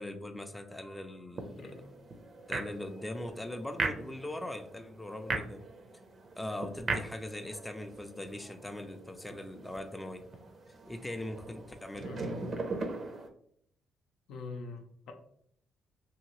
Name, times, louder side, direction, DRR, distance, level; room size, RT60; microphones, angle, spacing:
voice 1, 0.0-1.9 2.5-5.7 6.4-10.3 10.9-12.1, left 1 dB, 10° left, 6 dB, 0.4 m, -41 dB
sound 1, 1.4-13.3, right 3 dB, 45° right, 0.5 m, -40 dB
voice 2, 1.6-1.9 12.0-12.5 14.3-15.1, left 4 dB, 85° left, 3 dB, 0.6 m, -44 dB
2.8 x 2.7 x 2.9 m, 0.68 s
cardioid pair, 90°, 0 cm